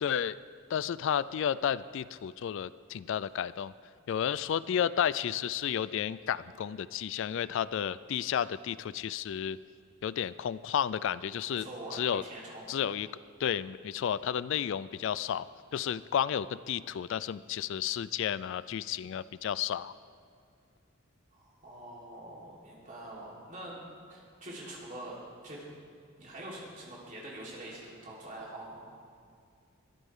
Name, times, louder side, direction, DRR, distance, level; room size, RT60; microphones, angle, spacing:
voice 1, 0.0-0.4 0.7-3.7 4.1-9.6 10.0-12.2 12.7-13.1 13.4-15.5 15.7-19.9, left 9 dB, 60° left, 18 dB, 0.3 m, -32 dB
voice 2, 11.5-12.6 21.3-23.8 24.1-25.2 25.4-25.6 26.2-28.9, right 1 dB, 40° right, -5 dB, 3.7 m, -44 dB
21.5 x 12.5 x 3.7 m, 2.4 s
head